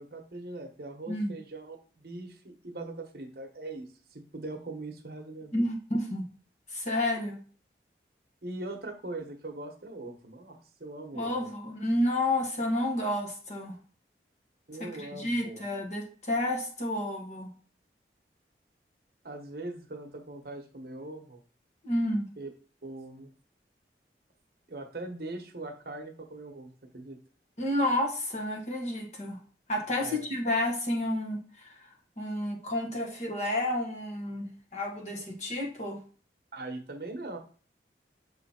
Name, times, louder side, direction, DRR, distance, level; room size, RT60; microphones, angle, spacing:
voice 1, 0.0-3.9 4.1-5.6 8.4-11.5 14.7-15.7 19.2-21.4 22.4-22.5 22.8-23.3 24.7-27.2 30.0-30.2 36.5-37.4, right 2 dB, 60° right, 4 dB, 1.0 m, -41 dB
voice 2, 5.5-6.3 6.7-7.4 11.1-13.8 15.0-17.5 21.8-22.3 27.6-29.4 29.7-31.9 32.2-36.0, left 1 dB, 40° left, 0 dB, 1.3 m, -30 dB
6.8 x 3.2 x 4.3 m, 0.40 s
head